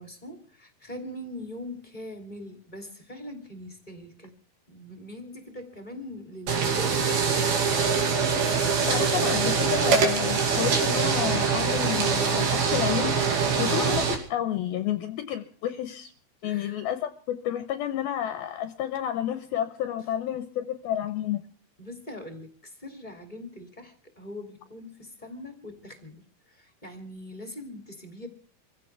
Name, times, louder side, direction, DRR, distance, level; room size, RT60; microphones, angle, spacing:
voice 1, 0.0-4.3 4.7-7.8 16.4-16.8 21.8-26.2 26.5-28.3, left 1 dB, 15° left, 2.3 m, -42 dB
sound 1, 6.5-14.1, right 6 dB, 65° right, 4.4 m, -24 dB
voice 2, 8.9-16.1 16.4-21.4, left 11 dB, 75° left, 2.6 m, -30 dB
26.5 x 16.0 x 3.4 m
omnidirectional pair, 4.7 m